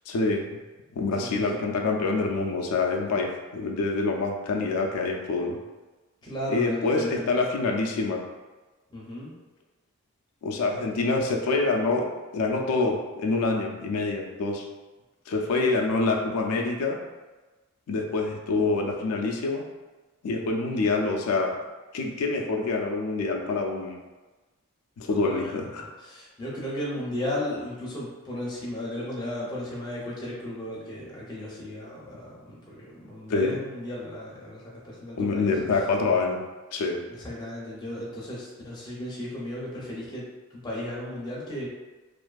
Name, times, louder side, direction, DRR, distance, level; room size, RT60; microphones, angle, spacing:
voice 1, 0.1-0.4 0.9-5.6 6.5-8.2 10.4-12.1 12.3-14.6 15.3-17.0 17.9-19.6 20.2-21.5 21.9-24.0 25.0-25.9 33.3-33.6 35.2-36.4 36.7-37.0, left 3 dB, 90° left, 1 dB, 0.4 m, -26 dB
voice 2, 1.2-1.7 6.2-7.2 8.9-9.3 25.1-35.5 37.1-40.3 40.6-41.7, left 1 dB, 20° left, -6 dB, 0.5 m, -35 dB
2.5 x 2.4 x 2.2 m, 1.2 s
head